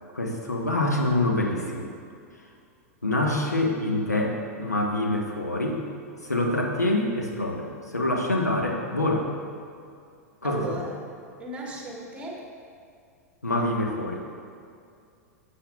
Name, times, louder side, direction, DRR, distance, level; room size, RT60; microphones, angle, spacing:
voice 1, 0.1-1.9 3.0-5.8 6.2-7.7 7.9-9.3 10.4-10.8 13.4-14.2, left 1 dB, 85° left, 0 dB, 1.1 m, -26 dB
voice 2, 10.4-11.0 11.4-12.4 13.4-13.7, right 2 dB, 15° right, -2 dB, 1.7 m, -36 dB
12.5 x 7.7 x 2.4 m, 2.4 s
figure-of-eight pair, 95°, 9 cm